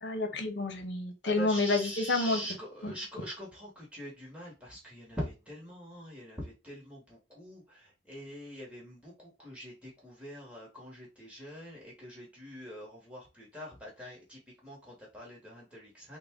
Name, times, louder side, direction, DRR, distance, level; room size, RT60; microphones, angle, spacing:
voice 1, 0.0-2.4 2.8-2.9, left 2 dB, 65° left, 0.8 m, -29 dB
voice 2, 1.2-16.2, equal, 5° right, 1.2 m, -44 dB
3.6 x 2.2 x 3.6 m
head